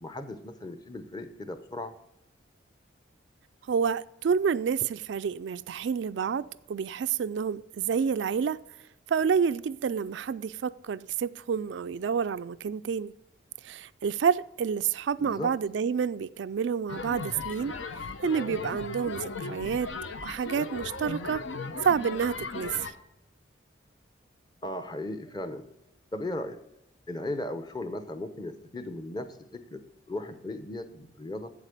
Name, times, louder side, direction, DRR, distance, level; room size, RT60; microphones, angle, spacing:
voice 1, 0.0-1.9 15.2-15.5 24.6-25.6 26.1-26.6 27.1-31.5, left 1 dB, 20° left, 0.8 m, -37 dB
voice 2, 3.7-8.6 9.1-13.1 13.6-17.8 18.2-19.9 20.2-21.4 21.8-22.9, right 6 dB, 70° right, 0.3 m, -29 dB
sound 1, 16.9-22.9, left 4 dB, 80° left, 0.8 m, -37 dB
8.2 x 7.8 x 6.6 m
head